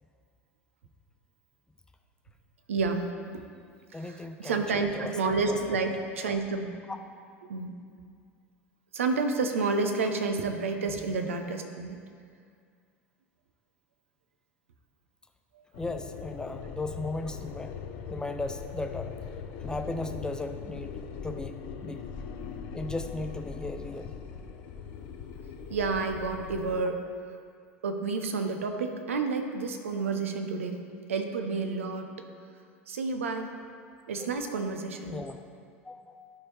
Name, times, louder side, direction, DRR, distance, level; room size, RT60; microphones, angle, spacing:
voice 1, 2.7-3.4 4.0-6.8 7.5-7.8 8.9-12.0 25.7-27.0 27.8-30.8 31.1-32.1 32.9-33.5 34.1-35.2, right 4 dB, 75° right, 6 dB, 0.6 m, -30 dB
voice 2, 3.9-5.2 5.5-5.8 10.9-11.1 15.8-17.7 18.1-19.1 19.6-22.0 22.7-24.1 34.2-34.3 35.1-35.4 35.8-36.2, left 2 dB, 10° left, 6 dB, 0.4 m, -36 dB
sound 1, 15.7-26.8, left 6 dB, 55° left, 0.6 m, -40 dB
12.5 x 4.6 x 3.3 m, 2.2 s
figure-of-eight pair, 75°, 7 cm